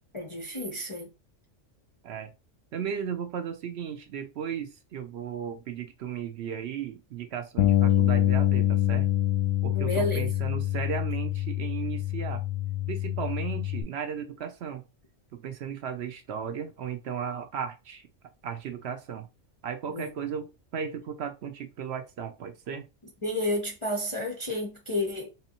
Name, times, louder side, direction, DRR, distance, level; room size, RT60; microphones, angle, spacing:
voice 1, 0.1-1.1 9.7-10.3 19.9-20.1 23.2-25.3, left 1 dB, 40° left, 0.4 m, -31 dB
voice 2, 2.7-9.1 9.6-12.4 12.9-14.8 15.3-18.0 18.4-19.3 19.6-22.8, right 7 dB, 65° right, 0.8 m, -35 dB
Bass guitar, 7.6-13.8, left 13 dB, 90° left, 1.0 m, -25 dB
3.9 x 2.8 x 2.8 m
omnidirectional pair, 1.3 m